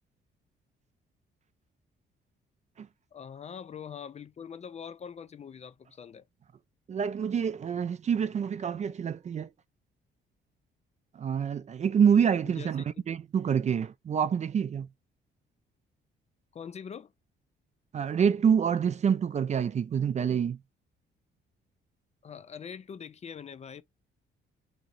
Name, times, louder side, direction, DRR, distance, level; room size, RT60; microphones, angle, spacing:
voice 1, 3.1-6.2 12.4-13.0 16.5-17.1 22.2-23.8, left 7 dB, 35° left, 0.4 m, -43 dB
voice 2, 6.9-9.5 11.1-14.9 17.9-20.6, right 7 dB, 35° right, 0.4 m, -27 dB
3.0 x 2.6 x 3.9 m
cardioid pair, 90°, 20 cm